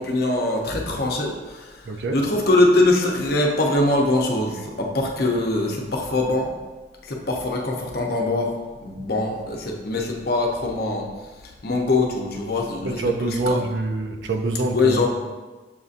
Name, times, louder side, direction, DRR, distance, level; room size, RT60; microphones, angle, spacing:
voice 1, 0.0-1.8 2.1-6.6 7.0-8.5 8.8-11.1 11.6-13.6 14.7-15.1, left 2 dB, 55° left, 0 dB, 0.6 m, -22 dB
voice 2, 1.9-2.3 12.8-15.1, right 2 dB, 70° right, 5 dB, 0.4 m, -25 dB
7.1 x 2.6 x 2.5 m, 1.2 s
head